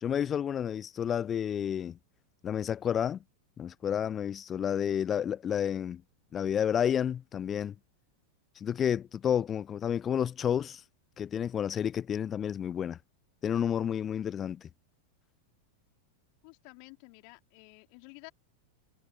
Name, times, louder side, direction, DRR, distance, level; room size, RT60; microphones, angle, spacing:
voice 1, 0.0-2.0 2.4-3.2 3.6-6.0 6.3-7.7 8.6-10.8 11.2-13.0 13.4-14.6, left 9 dB, 25° left, 0.6 m, -30 dB
voice 2, 16.4-18.3, left 40 dB or more, 45° left, 3.4 m, -52 dB
figure-of-eight pair, 90°, 0 cm